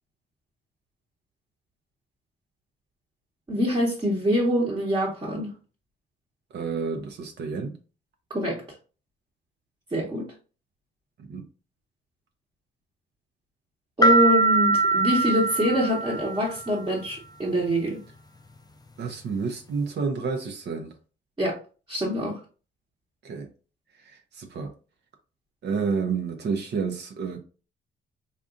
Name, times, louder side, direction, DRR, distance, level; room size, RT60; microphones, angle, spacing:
voice 1, 3.5-5.5 8.3-8.6 9.9-10.3 14.0-18.0 21.4-21.6 21.9-22.4, equal, 20° right, 1.0 m, -25 dB
voice 2, 6.5-7.7 11.2-11.4 19.0-20.9 23.2-23.5 24.0-24.7 25.6-27.4, right 5 dB, 60° right, 0.6 m, -30 dB
sound 1, 14.0-16.7, right 3 dB, 20° left, 0.4 m, -22 dB
3.7 x 2.6 x 2.5 m
cardioid pair, 90°, 20 cm